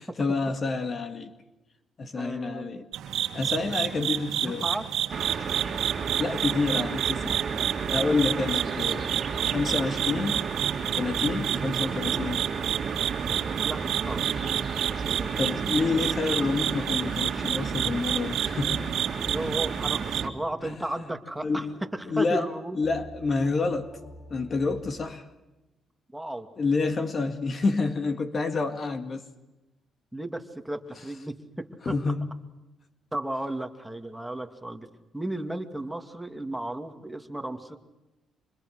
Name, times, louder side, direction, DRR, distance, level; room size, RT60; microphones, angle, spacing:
voice 1, 0.2-1.3 2.0-2.9 3.3-4.6 6.2-7.4 7.9-9.1 9.4-10.5 10.9-12.4 15.4-18.8 20.6-20.7 21.4-21.7 22.1-22.5 22.8-23.9 24.3-25.3 26.6-29.2 31.9-32.3, left 3 dB, 40° left, 2.0 m, -28 dB
voice 2, 2.1-2.8 4.4-4.9 9.4-9.8 13.6-14.6 15.1-15.4 19.3-21.7 21.9-22.8 26.1-26.5 30.1-31.9 33.1-34.9 35.1-37.8, right 1 dB, 5° right, 2.5 m, -34 dB
sound 1, 2.9-20.2, right 11 dB, 80° right, 2.0 m, -30 dB
sound 2, 5.1-20.3, right 6 dB, 50° right, 2.4 m, -32 dB
sound 3, 13.8-25.1, left 1 dB, 10° left, 3.0 m, -49 dB
29.5 x 27.0 x 6.6 m
cardioid pair, 90°, 0 cm